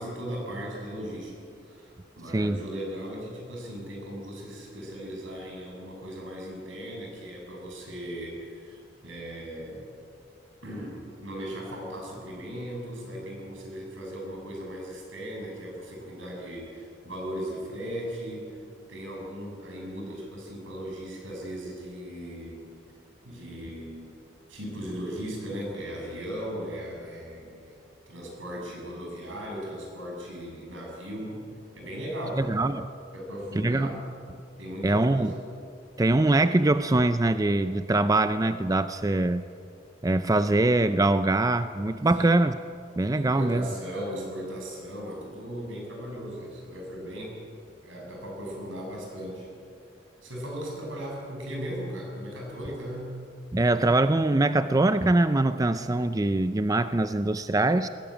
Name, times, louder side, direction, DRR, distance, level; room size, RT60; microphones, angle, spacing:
voice 1, 0.0-9.8 10.6-18.6 18.9-22.6 23.2-24.0 24.5-27.8 28.1-31.5 31.7-32.6 33.1-34.1 34.6-35.4 42.1-42.4 43.1-47.4 47.8-49.5 50.2-53.2, equal, 80° right, -1 dB, 7.3 m, -37 dB
voice 2, 2.3-2.6 32.4-32.9 33.6-33.9 34.8-35.3 36.0-39.5 40.0-42.6 43.0-43.7 53.5-57.9, right 2 dB, 20° right, 11 dB, 0.4 m, -23 dB
21.0 x 17.0 x 8.9 m, 2.5 s
head